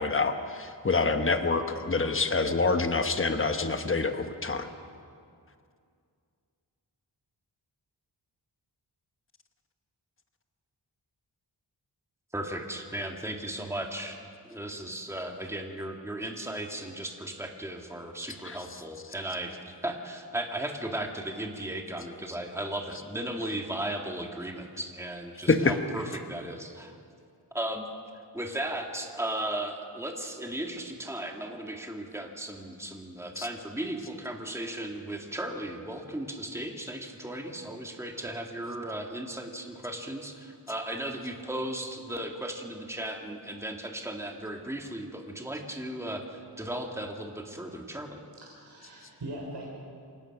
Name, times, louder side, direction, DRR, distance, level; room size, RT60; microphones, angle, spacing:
voice 1, 0.0-4.7 18.4-18.6 25.5-25.7 33.4-33.5, left 3 dB, 30° left, 7 dB, 1.2 m, -26 dB
voice 2, 12.3-14.2 14.4-27.0 27.5-27.9 28.3-48.2, right 1 dB, 5° right, 2 dB, 2.0 m, -36 dB
voice 3, 48.3-49.7, right 1 dB, 75° right, -2 dB, 4.0 m, -41 dB
27.5 x 17.5 x 6.0 m, 2.3 s
wide cardioid pair, 105°, 43 cm